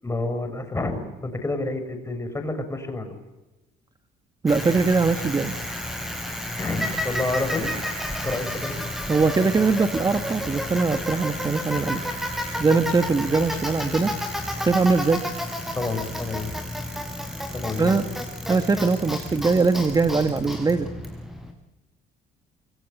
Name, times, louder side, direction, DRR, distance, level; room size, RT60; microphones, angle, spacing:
voice 1, 0.0-3.2 6.6-7.7 8.2-8.8 15.7-16.5 17.5-18.0, left 2 dB, 15° left, 8 dB, 7.0 m, -29 dB
voice 2, 4.4-5.5 9.1-12.0 12.6-14.1 14.6-15.2 17.8-18.1 18.5-20.9, right 4 dB, 25° right, 7 dB, 1.6 m, -21 dB
Bicycle, 4.5-21.5, left 1 dB, ahead, 6.6 m, -31 dB
29.5 x 24.5 x 8.3 m, 1.1 s
cardioid pair, 110°, 17 cm